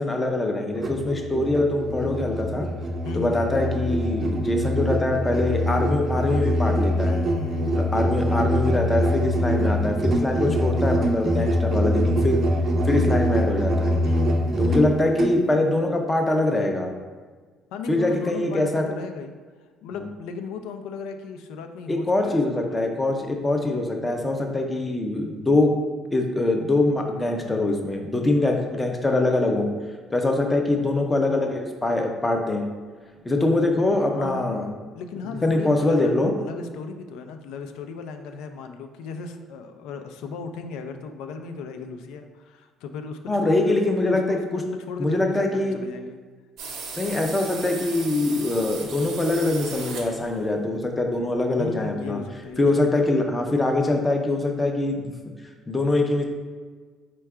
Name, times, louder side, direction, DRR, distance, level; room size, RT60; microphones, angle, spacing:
voice 1, 0.0-2.7 3.1-7.2 7.8-12.4 12.9-14.0 14.6-16.9 17.9-18.9 21.9-25.7 26.1-29.7 30.1-32.7 33.2-34.7 35.4-36.3 43.3-44.6 45.0-45.8 47.0-52.2 52.6-55.0 55.7-56.2, left 2 dB, 15° left, 2 dB, 0.5 m, -23 dB
Musical instrument, 0.7-15.4, equal, 40° right, 0.5 m, -24 dB
voice 2, 3.0-3.5 7.0-8.1 14.0-14.9 17.7-19.4 19.8-22.8 23.6-23.8 34.1-34.6 34.9-46.2 51.6-52.7, left 5 dB, 90° left, 6 dB, 0.3 m, -36 dB
sound 1, 46.6-50.6, right 4 dB, 80° right, 0.8 m, -37 dB
4.3 x 2.3 x 4.7 m, 1.5 s
cardioid pair, 150°, 0 cm